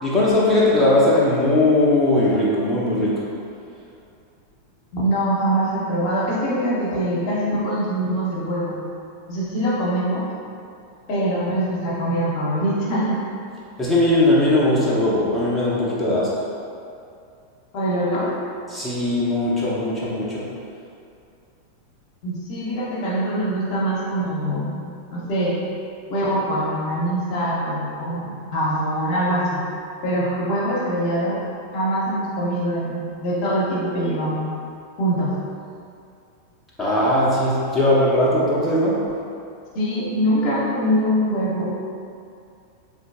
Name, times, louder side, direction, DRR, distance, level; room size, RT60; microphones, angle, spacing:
voice 1, 0.0-3.3 13.8-16.4 18.7-20.5 36.8-39.1, left 1 dB, 5° left, -9 dB, 0.6 m, -19 dB
voice 2, 4.9-8.8 9.3-10.3 11.1-13.2 17.7-18.3 22.2-24.8 25.1-25.6 26.1-29.6 30.0-31.4 31.7-34.5 35.0-35.4 39.7-41.7, right 1 dB, 45° left, -6 dB, 0.7 m, -23 dB
3.7 x 2.6 x 2.4 m, 2.5 s
figure-of-eight pair, 90°, 0 cm